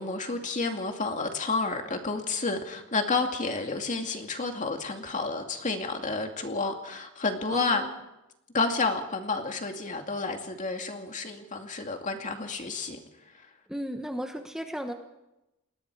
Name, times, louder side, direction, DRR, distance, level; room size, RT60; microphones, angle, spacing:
voice 1, 0.0-7.8 8.5-13.0 13.3-13.5, left 3 dB, 35° left, 4 dB, 2.4 m, -30 dB
voice 2, 7.5-7.9 13.7-14.9, equal, 5° right, 4 dB, 1.2 m, -35 dB
29.0 x 20.5 x 4.8 m, 0.95 s
head